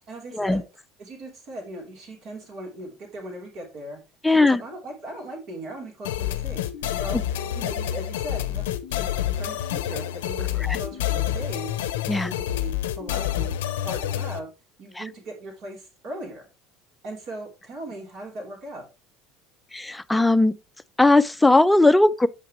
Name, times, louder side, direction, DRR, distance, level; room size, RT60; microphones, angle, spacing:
voice 1, 0.1-0.6 1.0-4.0 4.3-6.6 7.0-11.8 12.2-13.5 13.8-14.5 14.8-16.5 17.0-18.8, right 1 dB, 55° right, 3.4 m, -38 dB
voice 2, 4.2-4.6 10.6-10.8 12.1-12.3 15.0-15.1 19.7-20.6 21.0-22.3, left 2 dB, 10° left, 0.5 m, -18 dB
sound 1, 6.0-14.4, left 12 dB, 80° left, 0.6 m, -28 dB
8.2 x 5.8 x 3.0 m
hypercardioid pair, 75°, 0 cm